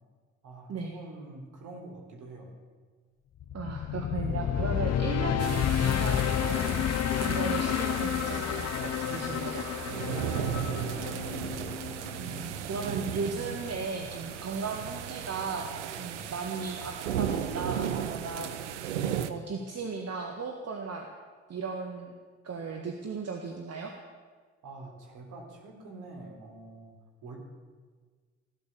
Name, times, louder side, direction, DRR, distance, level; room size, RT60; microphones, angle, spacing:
voice 1, 0.4-2.5 9.9-11.2 16.0-16.3 24.6-26.9 27.2-27.4, right 2 dB, 60° right, 1 dB, 3.6 m, -46 dB
sound 1, 3.4-12.5, left 10 dB, 50° left, 0.7 m, -30 dB
voice 2, 3.5-6.9 7.2-9.7 12.2-18.5 18.9-21.1 21.5-22.1 22.4-23.9, right 4 dB, 45° right, 2 dB, 1.8 m, -36 dB
sound 2, 5.4-19.3, right 9 dB, 85° right, 0.7 m, -36 dB
16.0 x 12.0 x 7.0 m, 1.5 s
hypercardioid pair, 45°, 34 cm